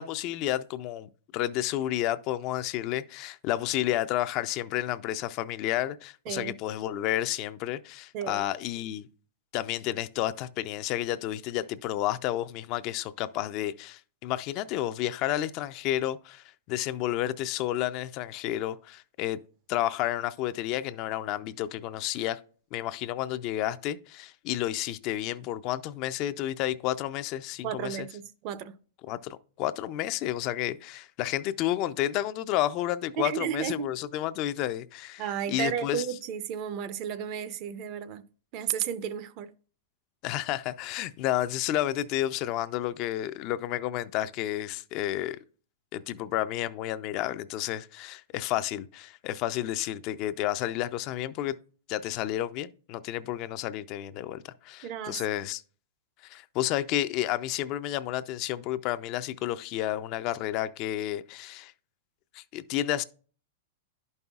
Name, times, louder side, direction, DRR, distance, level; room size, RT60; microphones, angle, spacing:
voice 1, 0.0-9.1 9.5-19.4 19.7-22.4 22.7-28.0 29.1-36.1 40.2-45.4 45.9-51.5 51.9-55.6 56.2-61.7 62.3-63.0, left 13 dB, 40° left, 0.3 m, -31 dB
voice 2, 8.1-8.4 27.6-28.7 33.2-33.9 35.2-38.2 38.5-39.5 54.8-55.2, right 9 dB, 40° right, 0.5 m, -33 dB
11.0 x 5.4 x 2.3 m
supercardioid pair, 150°, 0 cm